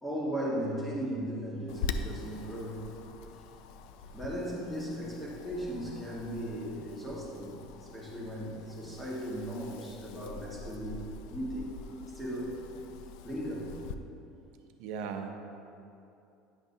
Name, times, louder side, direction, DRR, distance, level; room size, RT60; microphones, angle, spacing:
voice 1, 0.0-2.8 4.1-7.6 7.9-11.7 12.1-12.6 13.2-13.7, equal, ahead, -6 dB, 1.4 m, -37 dB
Wind, 1.7-13.9, left 5 dB, 70° left, 0.3 m, -44 dB
voice 2, 14.8-15.3, right 6 dB, 70° right, 5 dB, 0.7 m, -37 dB
9.6 x 5.9 x 2.7 m, 2.7 s
cardioid pair, 145°, 0 cm